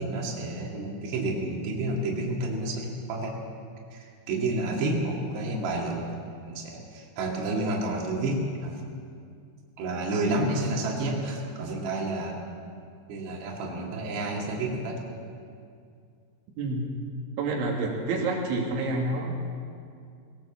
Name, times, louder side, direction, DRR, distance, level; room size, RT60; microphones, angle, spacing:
voice 1, 0.0-3.4 3.9-8.8 9.8-12.4 13.1-15.0, right 2 dB, 70° right, -2 dB, 4.6 m, -30 dB
voice 2, 16.6-16.9 17.4-19.4, right 2 dB, 90° right, -2 dB, 4.7 m, -28 dB
21.0 x 18.0 x 7.3 m, 2.3 s
omnidirectional pair, 5.1 m